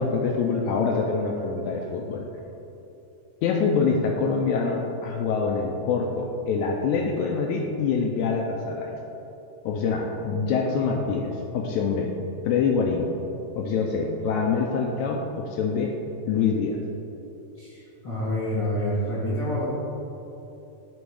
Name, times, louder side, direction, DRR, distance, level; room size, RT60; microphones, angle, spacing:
voice 1, 0.0-2.3 3.4-9.0 9.7-12.1 12.5-13.1 13.6-15.9 16.3-16.8, left 5 dB, 80° left, 1 dB, 1.8 m, -25 dB
voice 2, 17.5-19.7, equal, 50° left, -10 dB, 1.4 m, -28 dB
10.0 x 3.5 x 4.8 m, 2.9 s
omnidirectional pair, 3.7 m